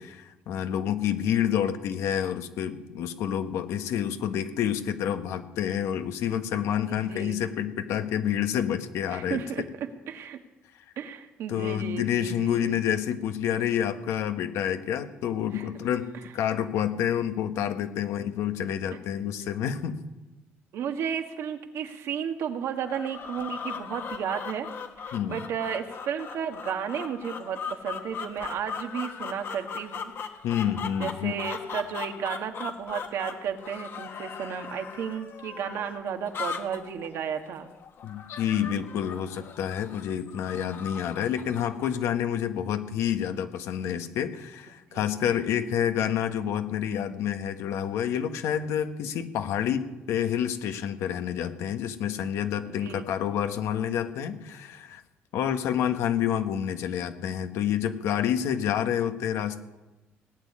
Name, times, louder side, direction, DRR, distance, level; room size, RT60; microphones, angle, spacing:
voice 1, 0.0-9.4 11.5-20.0 25.1-25.4 30.4-31.3 38.0-55.0 55.3-59.6, left 9 dB, 80° left, 8 dB, 1.3 m, -28 dB
voice 2, 6.9-7.4 9.1-10.4 11.0-12.8 15.5-15.7 20.7-24.7 25.0-30.1 31.0-37.7 41.2-41.5 44.9-45.1 52.7-53.0, right 8 dB, 75° right, 5 dB, 1.7 m, -33 dB
sound 1, 22.8-42.0, left 6 dB, 55° left, 1.7 m, -39 dB
18.0 x 7.4 x 9.8 m, 1.1 s
cardioid pair, 90°, 5 cm